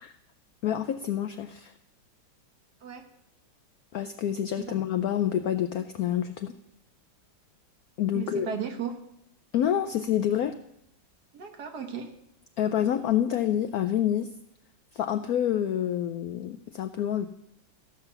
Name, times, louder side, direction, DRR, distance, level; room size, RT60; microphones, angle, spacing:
voice 1, 0.6-1.7 3.9-6.5 8.0-8.5 9.5-10.6 12.6-14.3 14.9-17.3, left 10 dB, 80° left, 9 dB, 0.8 m, -27 dB
voice 2, 8.1-9.0 11.3-12.1, right 7 dB, 60° right, 6 dB, 1.6 m, -35 dB
14.5 x 5.6 x 6.8 m, 0.77 s
omnidirectional pair, 2.1 m